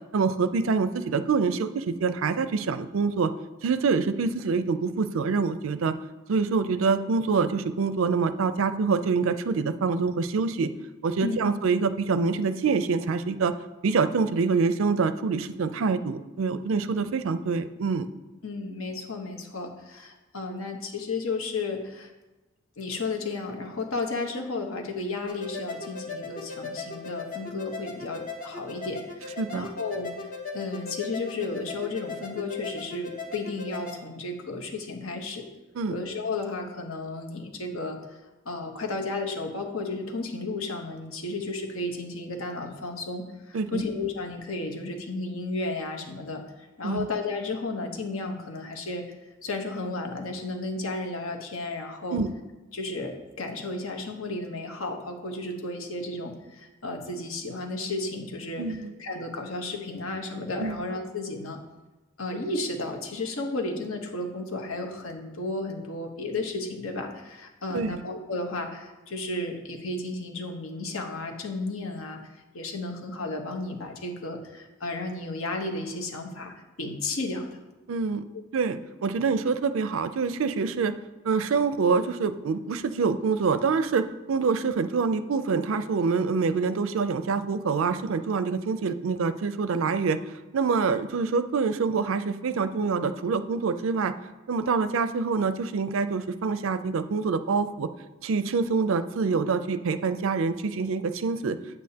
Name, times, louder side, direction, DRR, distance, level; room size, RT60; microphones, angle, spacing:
voice 1, 0.1-3.3 3.6-5.9 6.3-10.7 11.0-13.5 13.8-18.1 29.4-29.7 35.8-35.9 43.5-43.8 46.8-47.1 52.1-52.3 58.6-58.9 60.6-60.8 67.7-68.0 77.9-78.2 78.5-80.9 81.2-90.2 90.5-94.1 94.5-97.9 98.2-101.6, right 4 dB, 70° right, 12 dB, 0.4 m, -26 dB
voice 2, 18.4-22.1 22.8-30.3 30.5-35.5 35.9-38.2 38.4-49.0 49.4-52.2 52.7-61.6 62.2-72.2 72.5-77.5, left 2 dB, 75° left, 3 dB, 1.0 m, -33 dB
sound 1, 25.3-34.0, left 4 dB, 40° left, 0.9 m, -38 dB
8.4 x 8.2 x 2.8 m, 1.1 s
head